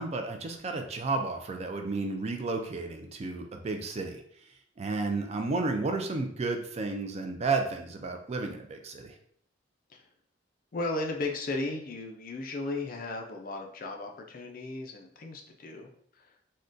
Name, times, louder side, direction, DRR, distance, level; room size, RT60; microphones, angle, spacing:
voice 1, 0.0-4.2 4.8-9.1, right 3 dB, 35° right, 4 dB, 0.3 m, -32 dB
voice 2, 10.7-16.5, left 2 dB, 45° left, 3 dB, 0.4 m, -36 dB
3.6 x 2.2 x 2.5 m, 0.64 s
head